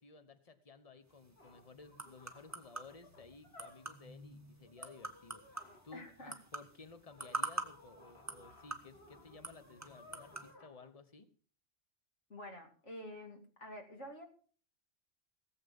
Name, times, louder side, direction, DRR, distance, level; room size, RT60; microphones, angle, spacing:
voice 1, 0.0-11.3, left 4 dB, 30° left, 10 dB, 1.2 m, -56 dB
sound 1, 1.1-1.2 1.4-4.1 4.7-5.9 7.1-10.9, left 2 dB, 55° left, 2.4 m, -60 dB
sound 2, 1.1-10.5, right 2 dB, 15° right, 1.3 m, -46 dB
voice 2, 5.9-6.3 12.3-14.2, equal, 70° left, 3 dB, 2.8 m, -48 dB
18.0 x 7.9 x 5.4 m, 0.43 s
omnidirectional pair, 1.3 m